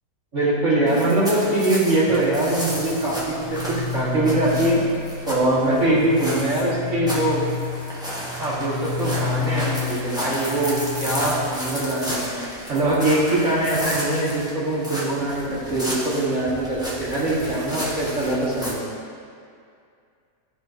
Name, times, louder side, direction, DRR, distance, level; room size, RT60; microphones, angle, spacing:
voice 1, 0.3-4.8 5.2-7.4 8.4-12.3 12.7-18.8, right 1 dB, 40° right, -8 dB, 1.7 m, -22 dB
sound 1, 0.9-18.7, equal, 5° right, 0.5 m, -33 dB
sound 2, 2.1-11.9, left 6 dB, 35° left, 1.6 m, -31 dB
12.5 x 4.5 x 2.6 m, 2.3 s
omnidirectional pair, 2.3 m